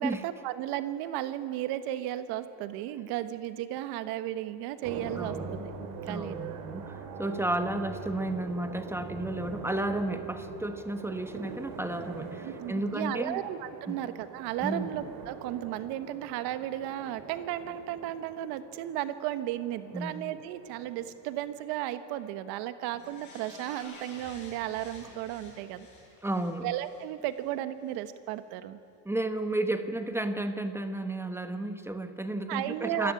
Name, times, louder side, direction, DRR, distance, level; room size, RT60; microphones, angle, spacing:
voice 1, 0.0-5.4 5.6-6.4 12.4-25.9 26.6-28.8 32.5-33.1, right 13 dB, 80° right, 11 dB, 1.4 m, -34 dB
sound 1, 4.8-21.7, right 5 dB, 60° right, 2.8 m, -43 dB
voice 2, 5.2-5.7 6.1-13.4 13.9-14.0 14.6-14.9 19.9-20.1 26.2-26.7 29.0-33.1, right 1 dB, 5° right, 8 dB, 1.1 m, -32 dB
sound 2, 22.9-27.5 27.9-28.0, left 3 dB, 50° left, 7.7 m, -51 dB
26.5 x 13.5 x 9.7 m, 2.5 s
cardioid pair, 135°, 37 cm